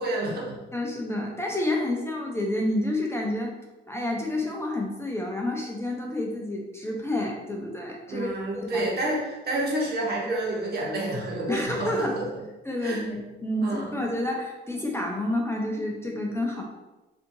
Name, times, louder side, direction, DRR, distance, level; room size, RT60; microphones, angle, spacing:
voice 1, 0.0-0.6 8.1-12.2 12.8-13.1 13.6-14.0, right 1 dB, 55° right, -3 dB, 1.1 m, -29 dB
voice 2, 0.7-3.5 3.9-9.1 11.5-12.2 12.7-16.6, left 1 dB, 15° left, -1 dB, 0.6 m, -29 dB
4.2 x 2.7 x 2.7 m, 1.1 s
cardioid pair, 90°, 20 cm